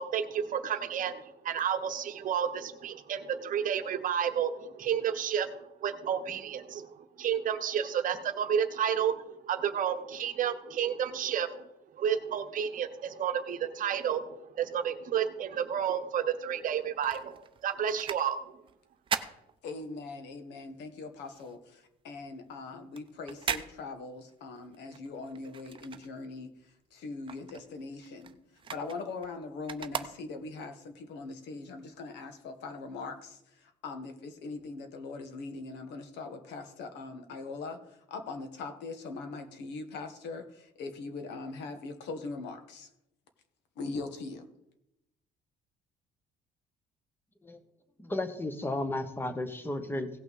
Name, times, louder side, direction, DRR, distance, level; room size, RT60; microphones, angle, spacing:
voice 1, 0.0-11.6 12.0-18.4, right 8 dB, 50° right, 9 dB, 0.9 m, -31 dB
sound 1, 16.6-20.3 20.6-26.6 26.9-30.7 31.2-31.3, right 7 dB, 30° right, 0.6 m, -40 dB
voice 2, 19.6-26.5 26.9-28.4 28.7-42.9 43.8-44.4, left 3 dB, 80° left, 7 dB, 1.5 m, -41 dB
voice 3, 48.0-50.1, left 2 dB, 10° left, 9 dB, 1.0 m, -33 dB
17.0 x 5.9 x 4.1 m, 0.85 s
cardioid pair, 130°, 18 cm